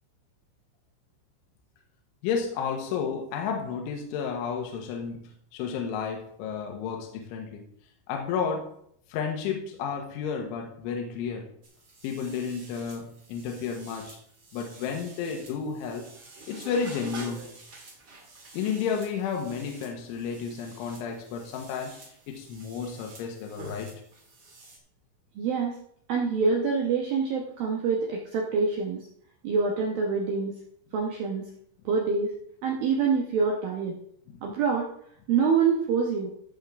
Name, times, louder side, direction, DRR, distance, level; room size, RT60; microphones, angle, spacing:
voice 1, 2.2-5.2 5.5-7.6 8.1-8.7 9.1-11.5 12.0-14.2 14.5-16.0 16.5-17.5 18.5-22.0 22.3-23.9, left 6 dB, 75° left, 2 dB, 3.4 m, -32 dB
sound 1, 11.6-24.8, right 2 dB, 60° right, 1.0 m, -48 dB
voice 2, 25.4-25.8 26.1-29.1 29.4-30.5 30.9-31.5 31.9-32.3 32.6-33.9 34.4-34.9 35.3-36.3, right 5 dB, 80° right, -1 dB, 2.1 m, -26 dB
14.5 x 7.2 x 3.6 m, 0.68 s
omnidirectional pair, 5.9 m